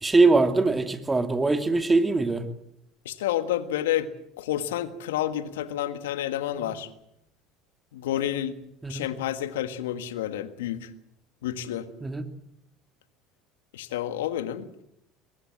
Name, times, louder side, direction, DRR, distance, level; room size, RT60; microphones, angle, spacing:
voice 1, 0.0-2.4 6.6-6.7 8.8-9.1 12.0-12.2, right 3 dB, 20° right, 7 dB, 2.7 m, -22 dB
voice 2, 3.0-4.1 4.4-6.9 7.9-8.6 8.9-10.9 11.4-11.9 13.7-14.7, left 11 dB, 85° left, 11 dB, 1.6 m, -29 dB
23.0 x 21.0 x 7.6 m, 0.78 s
hypercardioid pair, 75°, 0 cm